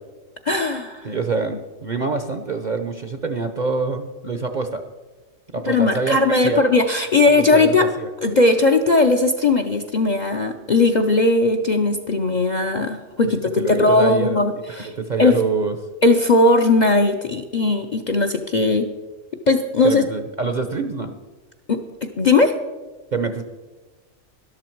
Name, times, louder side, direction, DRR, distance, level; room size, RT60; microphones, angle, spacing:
voice 1, 0.5-1.1 5.7-7.9 8.2-14.9 15.2-15.3 16.0-18.9 19.5-20.0 21.7-22.5, left 3 dB, 45° left, 7 dB, 0.6 m, -18 dB
voice 2, 1.0-4.8 5.5-6.6 7.3-8.1 13.3-14.4 14.8-15.8 19.8-21.2 23.1-23.4, right 4 dB, 45° right, 7 dB, 0.7 m, -25 dB
13.0 x 11.5 x 4.5 m, 1.3 s
omnidirectional pair, 1.4 m